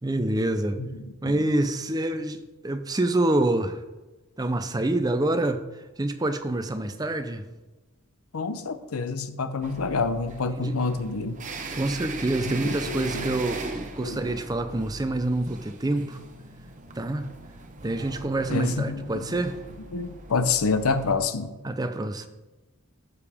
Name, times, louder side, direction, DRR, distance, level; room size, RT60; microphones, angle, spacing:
voice 1, 0.0-0.8 1.2-3.8 4.4-5.6 6.0-7.4 10.6-10.8 11.7-16.2 17.0-17.3 17.8-19.6 21.6-22.3, right 1 dB, 20° right, 8 dB, 0.5 m, -26 dB
voice 2, 8.3-11.4 12.4-13.4 14.0-14.3 18.5-19.4 19.9-21.5, left 4 dB, 85° left, 11 dB, 0.7 m, -28 dB
sound 1, 9.6-21.2, right 3 dB, 35° right, 0.9 m, -40 dB
12.0 x 6.9 x 3.5 m, 1.1 s
head